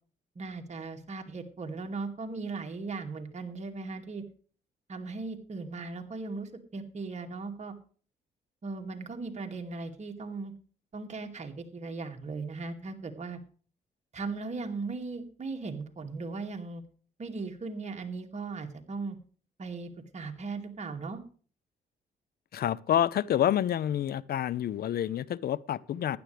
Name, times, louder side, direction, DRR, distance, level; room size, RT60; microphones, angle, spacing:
voice 1, 0.4-4.2 4.9-7.7 8.6-10.5 10.9-13.4 14.1-16.8 17.2-19.2 19.6-21.2, right 3 dB, 40° right, 2.3 m, -38 dB
voice 2, 22.5-26.2, left 11 dB, 65° left, 0.6 m, -28 dB
15.5 x 11.5 x 3.4 m
cardioid pair, 80°, 17 cm